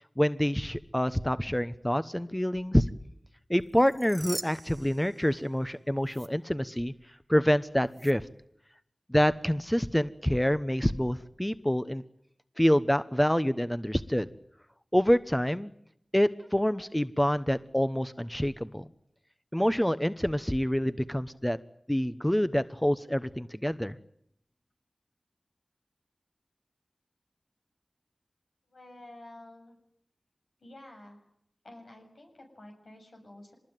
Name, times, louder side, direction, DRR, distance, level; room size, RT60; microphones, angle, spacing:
voice 1, 0.2-2.9 3.5-6.9 7.3-8.2 9.1-12.0 12.6-14.3 14.9-15.7 16.1-18.9 19.5-21.6 21.9-24.0, equal, 10° left, 12 dB, 0.9 m, -27 dB
sound 1, 3.7-5.7 6.0-6.3 7.9-8.1, right 2 dB, 40° right, 1.6 m, -42 dB
voice 2, 28.7-29.8 30.6-31.3 31.6-33.5, left 1 dB, 85° left, 2 dB, 7.5 m, -50 dB
25.0 x 20.5 x 9.2 m, 0.73 s
wide cardioid pair, 55°, 0 cm